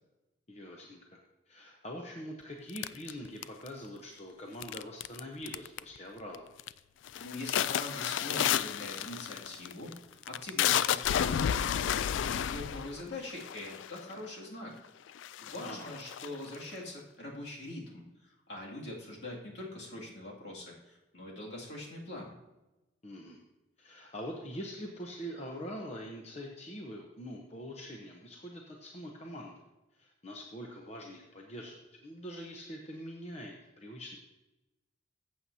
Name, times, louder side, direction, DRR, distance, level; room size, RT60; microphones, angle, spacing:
voice 1, 0.5-1.2 1.5-6.5 15.6-16.0 23.0-23.4 23.8-29.6 30.0-34.2, equal, 35° left, 0 dB, 0.9 m, -44 dB
sound 1, 2.8-3.9 4.6-5.2 5.5-6.0 6.3-6.7 7.1-14.1 14.8-14.9 15.2-16.8, left 10 dB, 85° left, 0.3 m, -31 dB
voice 2, 7.1-14.7 15.4-22.4, left 1 dB, 65° left, -3 dB, 2.4 m, -43 dB
14.5 x 7.7 x 2.8 m, 1.0 s
head